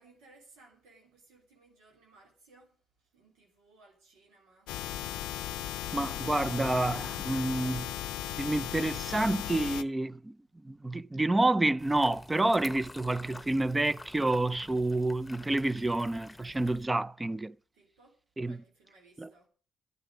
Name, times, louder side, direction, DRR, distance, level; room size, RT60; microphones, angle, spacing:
voice 1, 0.0-4.7 17.7-18.2 18.4-19.5, right 2 dB, 90° right, 3.5 m, -61 dB
sound 1, 4.7-9.8, left 12 dB, 85° left, 0.5 m, -36 dB
voice 2, 5.9-8.0 8.4-10.4 10.6-17.5 18.4-18.6 19.2-19.3, right 2 dB, 15° right, 0.5 m, -29 dB
sound 2, 11.8-16.9, left 2 dB, 15° left, 1.1 m, -49 dB
13.5 x 8.9 x 5.1 m
supercardioid pair, 65°, 0 cm